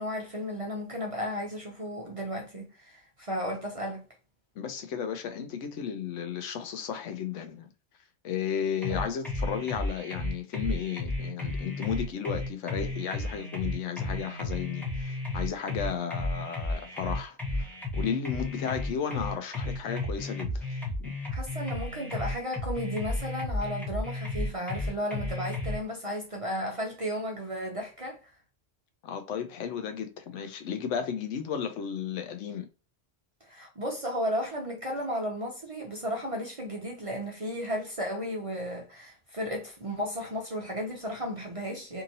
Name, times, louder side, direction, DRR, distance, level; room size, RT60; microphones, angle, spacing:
voice 1, 0.0-4.0 8.9-9.0 21.3-28.3 33.5-42.0, equal, 40° right, 0.5 m, -34 dB
voice 2, 4.6-7.7 8.2-17.7 17.9-20.6 21.0-21.1 29.0-32.7, left 7 dB, 85° left, 0.9 m, -34 dB
sound 1, 8.8-25.8, left 2 dB, ahead, 0.7 m, -33 dB
2.8 x 2.8 x 2.6 m
omnidirectional pair, 1.2 m